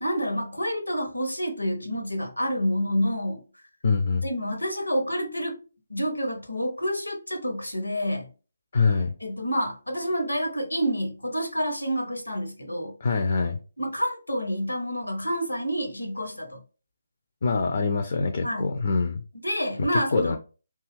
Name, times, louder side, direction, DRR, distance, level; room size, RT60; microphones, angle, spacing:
voice 1, 0.0-3.4 4.2-5.5 5.9-8.3 9.2-12.9 13.8-16.6 18.4-18.7 19.4-20.4, equal, 85° left, 0.8 m, -28 dB
voice 2, 3.8-4.3 8.7-9.1 13.0-13.6 17.4-19.2 19.8-20.4, left 4 dB, 50° left, 0.4 m, -24 dB
2.8 x 2.3 x 3.2 m
figure-of-eight pair, 145°, 0 cm